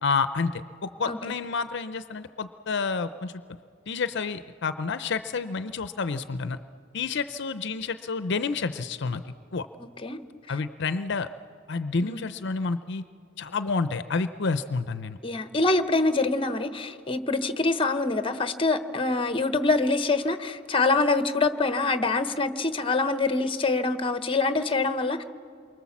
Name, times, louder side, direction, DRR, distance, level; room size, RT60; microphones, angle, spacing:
voice 1, 0.0-3.3 3.9-6.6 6.9-9.2 9.5-9.7 10.5-11.3 11.7-13.0 13.4-15.2, left 4 dB, 60° left, 11 dB, 0.6 m, -29 dB
voice 2, 9.8-10.2 10.5-10.6 12.0-12.3 15.2-25.2, left 3 dB, 25° left, 10 dB, 1.0 m, -25 dB
28.0 x 23.5 x 7.3 m, 2.4 s
head